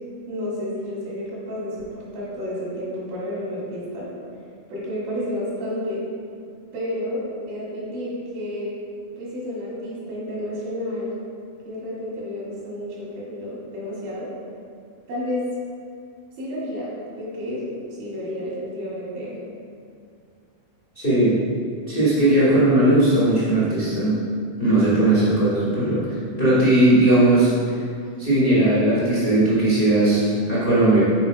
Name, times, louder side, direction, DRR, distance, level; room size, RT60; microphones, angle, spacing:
voice 1, 0.3-4.1 4.7-6.1 6.7-8.7 9.2-11.1 11.7-14.3 15.1-15.5 16.4-17.7 18.0-19.4, left 1 dB, 75° right, -6 dB, 3.9 m, -30 dB
voice 2, 20.9-21.4 21.9-24.2 24.6-26.1 26.4-27.5 28.2-31.0, right 1 dB, 55° left, -10 dB, 0.5 m, -18 dB
8.5 x 4.7 x 4.8 m, 2.3 s
omnidirectional pair, 4.2 m